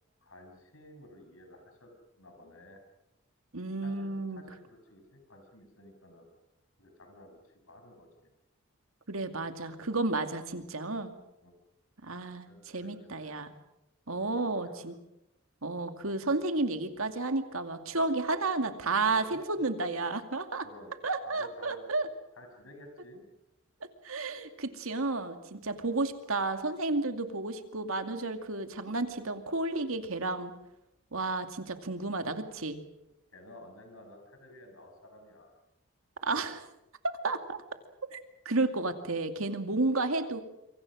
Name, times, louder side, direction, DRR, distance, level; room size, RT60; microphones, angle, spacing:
voice 1, 0.2-1.9 2.2-2.8 3.8-6.3 6.8-8.3 11.4-11.5 12.4-12.9 13.2-13.4 14.1-14.8 19.0-19.4 20.6-21.8 22.4-23.3 33.3-35.5, left 1 dB, 80° left, 5 dB, 6.6 m, -53 dB
voice 2, 3.5-4.4 9.1-11.1 12.0-13.5 14.1-14.9 15.6-20.7 21.0-22.1 24.0-30.5 31.1-32.8 36.2-36.6 37.0-37.6 38.1-38.2 38.5-40.4, right 3 dB, 85° right, 7 dB, 2.4 m, -32 dB
27.0 x 25.0 x 6.3 m, 0.89 s
head